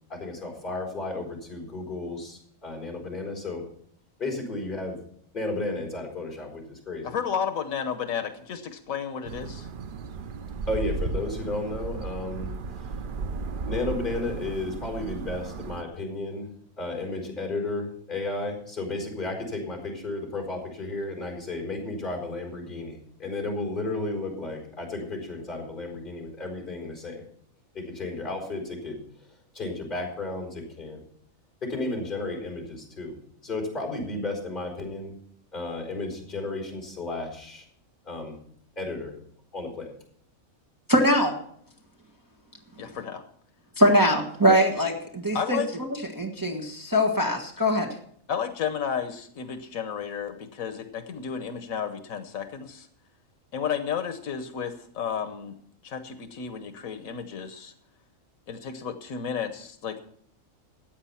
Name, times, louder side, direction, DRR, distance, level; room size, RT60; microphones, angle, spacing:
voice 1, 0.1-3.6 4.2-5.0 5.3-7.2 10.7-12.5 13.7-16.5 16.8-27.2 27.7-29.0 29.5-31.0 31.6-35.1 35.5-37.6 38.0-38.4 38.8-39.1 39.5-39.9, left 2 dB, 40° left, 1 dB, 4.6 m, -33 dB
voice 2, 7.0-9.7 42.8-43.2 45.3-45.7 48.3-52.9 53.5-55.5 55.8-57.7 58.5-60.0, left 7 dB, 85° left, 9 dB, 1.4 m, -32 dB
sound 1, 9.2-15.8, right 4 dB, 50° right, 0.7 m, -34 dB
voice 3, 40.9-41.3 43.8-45.9 46.1-47.9, equal, 15° right, 0 dB, 1.6 m, -22 dB
14.0 x 9.0 x 5.7 m, 0.64 s
omnidirectional pair, 1.4 m